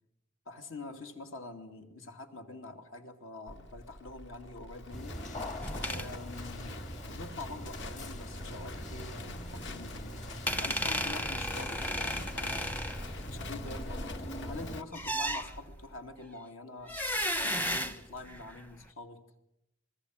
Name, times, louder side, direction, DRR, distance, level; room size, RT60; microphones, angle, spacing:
voice 1, 0.5-5.2 5.8-10.2 10.6-12.9 13.3-17.0 17.3-19.3, left 2 dB, 70° left, 6 dB, 2.6 m, -46 dB
Livestock farm animals working animals, 3.5-14.8, left 2 dB, 55° left, 1.3 m, -45 dB
sound 1, 4.9-14.8, equal, 35° left, 1.7 m, -42 dB
sound 2, 5.6-6.1 10.5-13.7 14.9-15.9 16.9-18.6, equal, 10° left, 0.8 m, -34 dB
27.5 x 21.0 x 6.5 m, 0.86 s
head